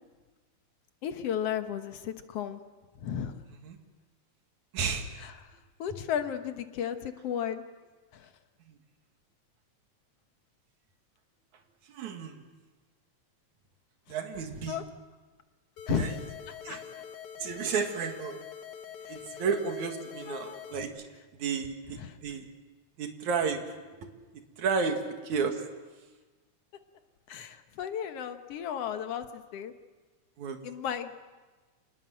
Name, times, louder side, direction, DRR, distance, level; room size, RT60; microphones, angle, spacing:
voice 1, 1.0-2.6 3.0-3.3 5.2-5.3 5.8-7.6 8.1-8.3 14.7-14.8 15.9-16.1 16.7-16.8 19.1-19.4 20.3-20.6 22.0-22.2 27.3-29.7 30.6-31.1, left 9 dB, 60° left, 8 dB, 2.0 m, -34 dB
voice 2, 4.7-5.1 11.9-12.4 14.1-14.8 15.9-16.2 16.7-16.8 17.4-18.4 19.1-20.9 21.4-22.4 23.0-23.6 24.6-25.6 30.4-30.6, right 5 dB, 80° right, 5 dB, 3.3 m, -32 dB
sound 1, 15.8-20.9, left 9 dB, 80° left, 2.7 m, -45 dB
26.5 x 20.0 x 7.7 m, 1.3 s
omnidirectional pair, 3.4 m